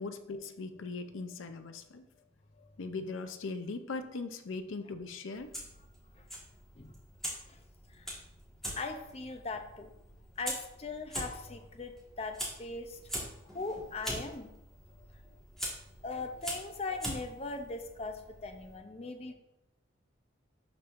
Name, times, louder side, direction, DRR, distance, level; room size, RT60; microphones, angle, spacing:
voice 1, 0.0-2.0 2.8-5.5 16.9-17.0, left 3 dB, 80° left, 8 dB, 0.6 m, -39 dB
Fire, 5.3-18.7, equal, ahead, 1.6 m, -43 dB
voice 2, 8.7-9.9 10.4-13.0 13.5-14.5 15.3-15.4 16.0-19.3, left 3 dB, 30° left, 6 dB, 0.5 m, -40 dB
11.5 x 4.4 x 2.5 m, 0.87 s
head